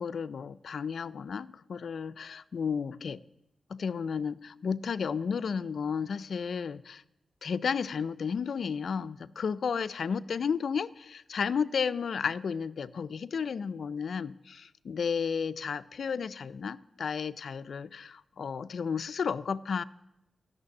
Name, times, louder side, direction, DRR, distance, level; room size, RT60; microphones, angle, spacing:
voice 1, 0.0-3.2 3.7-7.0 7.4-19.8, left 6 dB, 65° left, 13 dB, 0.4 m, -33 dB
15.0 x 6.7 x 9.7 m, 0.87 s
wide cardioid pair, 165°, 0 cm